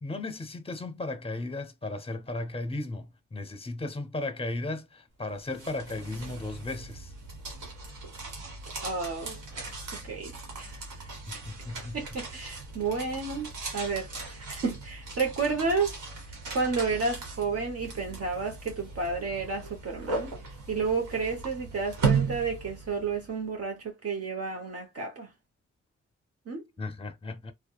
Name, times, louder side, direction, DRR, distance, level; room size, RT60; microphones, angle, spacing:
voice 1, 0.0-7.1 11.3-12.0 26.8-27.5, left 2 dB, 20° left, 0.7 m, -35 dB
sound 1, 5.3-23.3, right 4 dB, 85° right, 1.2 m, -37 dB
voice 2, 8.8-9.4 10.0-11.2 11.9-15.9 16.5-20.3 20.7-25.3 26.5-26.6, right 4 dB, 50° right, 0.9 m, -31 dB
2.8 x 2.2 x 2.2 m
supercardioid pair, 45°, 30 cm